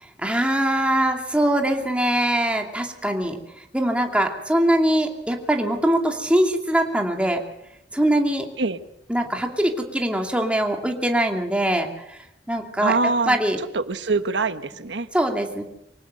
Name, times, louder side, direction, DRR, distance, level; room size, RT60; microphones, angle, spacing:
voice 1, 0.2-3.4 3.7-7.4 7.9-8.4 9.1-12.2 12.5-12.9 13.3-13.6 15.1-15.6, right 1 dB, 5° right, 2 dB, 2.6 m, -22 dB
voice 2, 12.8-15.1, right 3 dB, 85° right, 10 dB, 1.2 m, -24 dB
24.5 x 18.0 x 6.7 m, 0.83 s
head